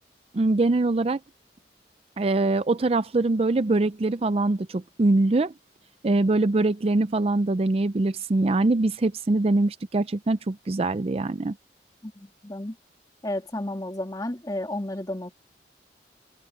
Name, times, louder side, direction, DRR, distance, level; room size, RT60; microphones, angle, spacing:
voice 1, 0.3-1.2 2.2-5.5 6.0-11.6, right 2 dB, 35° right, 0.4 m, -23 dB
voice 2, 12.0-12.8 13.2-15.3, left 1 dB, 20° left, 2.1 m, -32 dB
open air
head